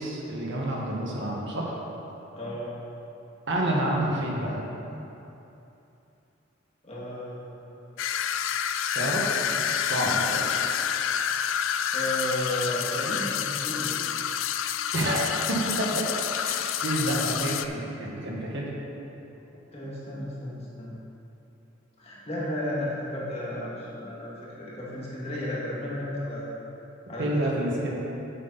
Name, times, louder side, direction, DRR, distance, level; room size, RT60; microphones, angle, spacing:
voice 1, 0.0-1.8 3.5-4.7 8.9-10.5 14.9-18.7 27.2-27.9, right 1 dB, 65° right, -2 dB, 1.5 m, -29 dB
voice 2, 2.3-2.7 6.8-8.0 11.9-14.0 19.7-21.0 22.0-26.5 27.1-27.3, left 1 dB, 30° left, -6 dB, 1.7 m, -33 dB
sound 1, 8.0-17.7, left 9 dB, 70° left, 0.4 m, -28 dB
8.5 x 8.0 x 4.1 m, 2.9 s
head